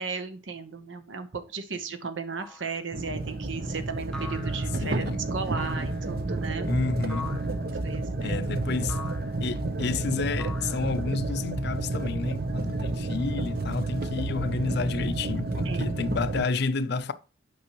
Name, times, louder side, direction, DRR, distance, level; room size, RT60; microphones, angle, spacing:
voice 1, 0.0-6.7 7.8-8.4 15.6-16.0, right 5 dB, 70° right, 1.0 m, -35 dB
sound 1, 2.4-2.8 4.1-4.9 5.6-6.2 7.1-7.6 8.9-9.4 10.4-11.1, left 3 dB, 5° left, 0.8 m, -42 dB
sound 2, 2.9-16.5, right 2 dB, 50° right, 0.7 m, -30 dB
voice 2, 4.8-5.2 6.6-7.4 8.2-9.0 9.4-17.1, left 3 dB, 55° left, 0.5 m, -30 dB
8.5 x 5.4 x 3.0 m
head